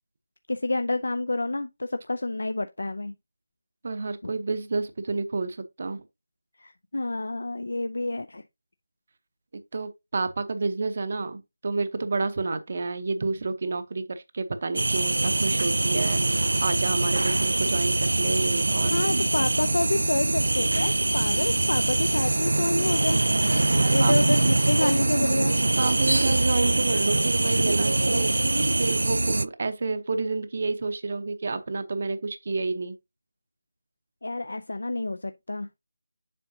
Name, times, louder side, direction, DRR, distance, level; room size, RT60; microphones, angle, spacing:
voice 1, 0.5-3.1 4.2-4.3 6.6-8.4 18.9-23.2 23.9-25.6 34.2-35.8, left 2 dB, 85° left, 0.5 m, -28 dB
voice 2, 3.8-6.0 9.7-19.1 23.8-24.4 25.8-33.0, right 3 dB, 35° right, 0.7 m, -30 dB
sound 1, 14.8-29.5, right 2 dB, 90° right, 0.3 m, -23 dB
7.6 x 5.5 x 2.7 m
figure-of-eight pair, 180°, 0 cm